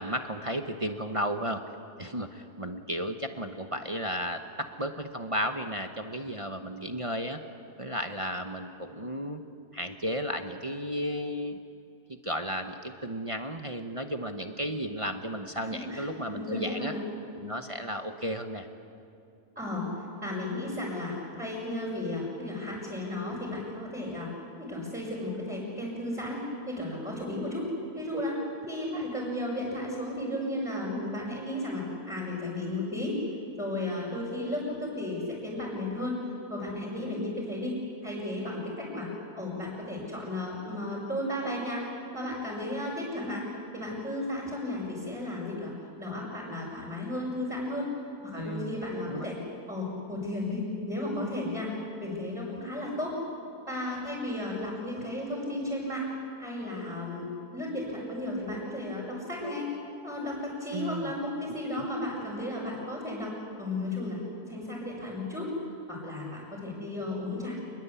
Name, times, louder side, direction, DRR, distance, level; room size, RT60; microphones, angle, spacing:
voice 1, 0.0-1.6 2.0-7.4 7.8-9.4 9.7-11.6 12.1-16.9 17.3-18.7 48.4-48.8 49.1-49.3 60.7-61.1 61.6-61.9, equal, 25° right, 5 dB, 0.9 m, -34 dB
voice 2, 15.6-17.0 19.6-24.3 24.6-27.7 27.9-28.4 28.7-33.2 33.6-36.2 36.5-37.7 38.0-39.1 39.3-41.8 42.1-43.4 43.7-45.7 46.0-47.9 48.2-49.4 49.7-51.7 52.0-53.2 53.7-56.1 56.4-57.3 57.5-59.7 60.0-63.3 63.6-64.2 64.5-65.5 65.9-67.5, left 1 dB, 5° right, -7 dB, 5.7 m, -34 dB
27.5 x 21.5 x 8.4 m, 2.6 s
omnidirectional pair, 1.7 m